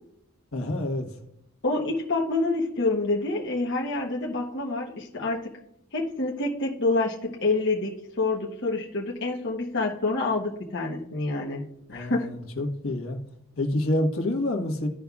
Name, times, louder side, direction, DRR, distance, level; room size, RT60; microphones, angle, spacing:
voice 1, 0.5-1.1 11.9-13.2 13.6-14.9, left 1 dB, 75° left, 3 dB, 1.3 m, -27 dB
voice 2, 1.6-5.5 5.9-7.9 8.2-12.3, left 2 dB, 55° left, -2 dB, 1.0 m, -27 dB
15.0 x 5.2 x 2.4 m, 0.78 s
head